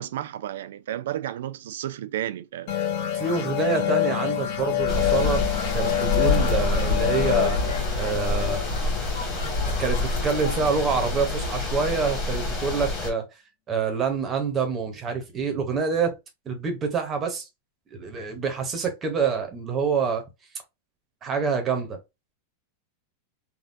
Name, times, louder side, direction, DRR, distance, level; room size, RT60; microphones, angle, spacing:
voice 1, 0.0-2.7, right 12 dB, 75° right, 0.3 m, -32 dB
sound 1, 2.7-9.9, left 11 dB, 40° left, 0.6 m, -27 dB
voice 2, 3.2-5.5 5.7-7.6 8.0-8.6 9.8-13.2 13.7-16.2 16.5-17.4 17.9-20.2 21.2-22.0, right 5 dB, 15° right, 0.7 m, -26 dB
sound 2, 4.5-12.2, left 4 dB, 75° left, 0.9 m, -39 dB
sound 3, 4.9-13.1, left 2 dB, 20° left, 1.2 m, -27 dB
3.5 x 2.2 x 2.5 m
supercardioid pair, 175°, 0 cm